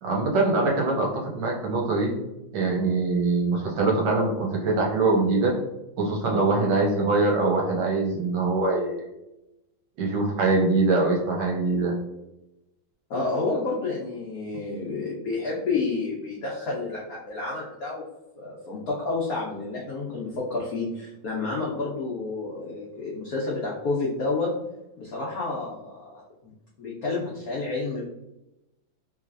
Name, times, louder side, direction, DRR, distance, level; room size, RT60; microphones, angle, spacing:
voice 1, 0.0-2.1 2.5-5.5 6.0-9.0 10.0-11.9, right 3 dB, 70° right, -2 dB, 1.2 m, -23 dB
voice 2, 13.1-18.0 18.4-24.5 25.0-26.5 26.8-28.0, left 3 dB, 65° left, -4 dB, 0.9 m, -30 dB
3.3 x 3.0 x 2.4 m, 0.93 s
omnidirectional pair, 2.2 m